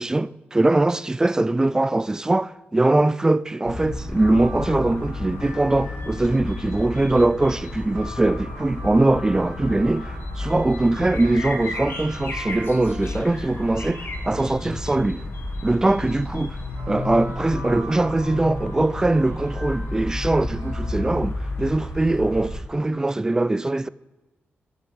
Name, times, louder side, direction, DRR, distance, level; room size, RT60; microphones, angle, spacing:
voice 1, 0.0-15.2 15.6-16.6 16.9-23.9, right 2 dB, 15° right, 0.3 m, -22 dB
sound 1, 3.6-22.6, left 2 dB, 60° left, 1.7 m, -32 dB
sound 2, 4.1-15.0 16.0-21.2, equal, 70° right, 2.5 m, -43 dB
16.5 x 7.1 x 3.4 m
wide cardioid pair, 110°, 4 cm